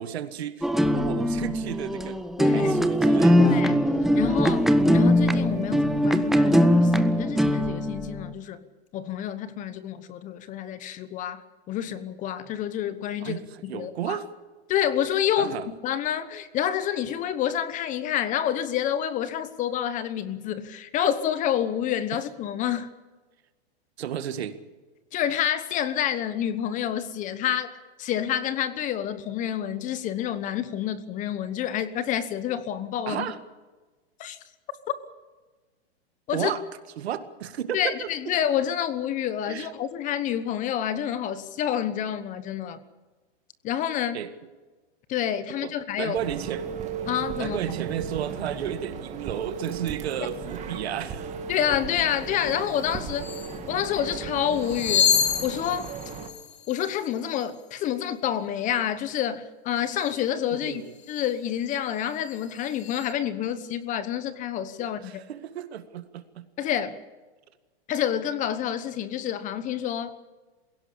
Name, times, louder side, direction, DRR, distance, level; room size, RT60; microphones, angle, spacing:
voice 1, 0.0-2.2 2.5-3.5 13.2-14.3 15.4-15.7 24.0-24.5 33.1-33.4 36.3-36.6 37.0-38.1 39.5-39.7 44.1-44.3 45.6-45.7 46.0-46.7 47.4-51.3 60.5-60.9 65.0-66.5, right 9 dB, 70° right, 10 dB, 2.0 m, -33 dB
sound 1, 0.6-8.3, equal, ahead, 0.6 m, -21 dB
voice 2, 2.4-2.8 3.4-3.8 4.1-8.6 8.9-14.2 14.7-15.6 15.8-22.9 25.1-27.7 28.0-33.3 34.2-34.4 36.3-36.5 37.7-42.8 43.6-44.2 45.1-46.2 47.1-47.6 51.5-53.3 53.7-55.1 55.4-55.9 56.7-65.2 66.6-67.0 67.9-70.2, left 10 dB, 25° left, 13 dB, 1.0 m, -28 dB
sound 2, 46.1-56.3, right 6 dB, 20° right, 2.1 m, -36 dB
sound 3, 52.7-52.8 53.1-53.6 54.5-57.6 59.8-60.2 61.0-61.3 61.6-63.1, left 8 dB, 65° left, 2.0 m, -29 dB
22.0 x 16.5 x 8.6 m, 1.3 s
hypercardioid pair, 145°, 33 cm